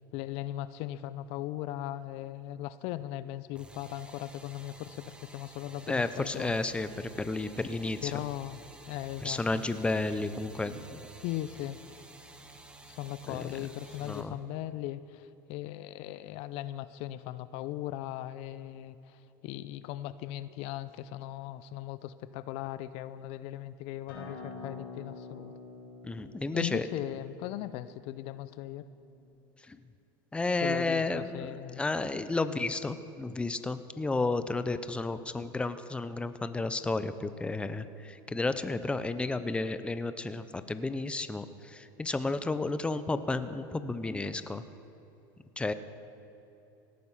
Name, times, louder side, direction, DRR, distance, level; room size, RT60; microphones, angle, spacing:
voice 1, 0.1-6.6 8.0-8.6 8.9-9.6 11.2-11.8 12.9-25.5 26.5-28.8 30.6-31.8, left 14 dB, 60° left, 15 dB, 0.5 m, -38 dB
sound 1, 3.5-14.2, right 2 dB, 10° right, 1.4 m, -52 dB
voice 2, 5.9-8.1 9.2-11.0 13.3-13.5 14.1-14.4 26.0-26.9 29.7-29.8 30.3-44.6 45.6-45.7, left 3 dB, 10° left, 12 dB, 0.6 m, -32 dB
Acoustic guitar, 24.1-29.3, left 3 dB, 85° left, 4.0 m, -47 dB
18.0 x 9.4 x 5.7 m, 2.9 s
supercardioid pair, 105°, 12 cm